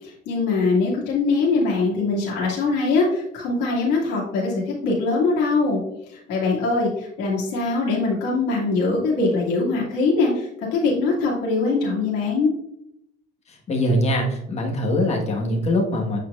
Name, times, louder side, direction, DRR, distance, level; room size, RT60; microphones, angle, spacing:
voice 1, 0.0-5.8 6.1-12.5, left 3 dB, 80° left, -5 dB, 2.3 m, -22 dB
voice 2, 13.5-16.2, left 1 dB, 35° left, 1 dB, 1.5 m, -22 dB
8.5 x 4.5 x 2.5 m, 0.79 s
cardioid pair, 120°, 18 cm